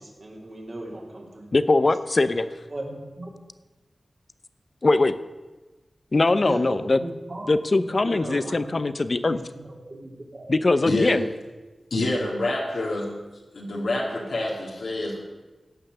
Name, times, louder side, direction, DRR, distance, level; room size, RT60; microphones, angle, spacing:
voice 1, 0.2-1.5 2.7-3.3 6.4-7.5 7.8-8.9 9.3-9.6 9.9-10.1, right 1 dB, 50° right, -1 dB, 3.2 m, -36 dB
voice 2, 1.5-2.5 4.8-5.2 6.1-7.0 7.5-9.4 10.5-11.3, left 2 dB, 50° left, 13 dB, 0.7 m, -21 dB
voice 3, 10.9-11.2 11.9-13.2 13.5-15.2, left 2 dB, 85° left, -4 dB, 2.4 m, -27 dB
16.5 x 5.8 x 6.7 m, 1.2 s
cardioid pair, 55°, 0 cm